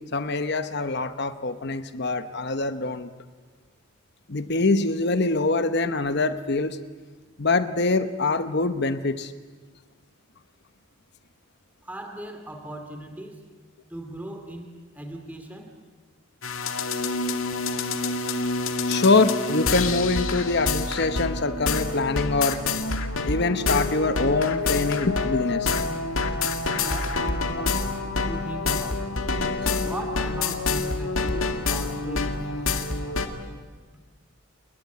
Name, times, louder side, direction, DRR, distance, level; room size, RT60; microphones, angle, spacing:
voice 1, 0.1-3.1 4.3-6.8 7.4-9.3 18.9-22.6 23.2-25.7, left 3 dB, 50° left, 11 dB, 1.0 m, -24 dB
voice 2, 11.8-13.5 13.9-15.8 26.8-27.6 28.3-29.1 29.8-32.4, right 1 dB, 5° right, 4 dB, 2.5 m, -38 dB
sound 1, 16.4-33.3, left 3 dB, 70° left, 2.0 m, -27 dB
29.0 x 20.5 x 9.5 m, 1.4 s
head